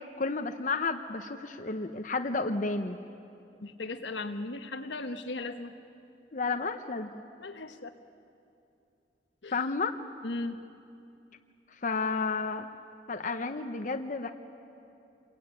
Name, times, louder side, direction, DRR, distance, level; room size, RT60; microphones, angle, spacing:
voice 1, 0.0-3.0 6.3-7.1 9.5-10.0 11.7-12.7 13.1-14.3, left 4 dB, 45° left, 6 dB, 0.8 m, -31 dB
voice 2, 3.6-5.8 7.4-7.9 9.4-9.6 10.2-10.6, left 2 dB, 85° left, 7 dB, 1.3 m, -37 dB
27.5 x 22.0 x 9.1 m, 2.6 s
head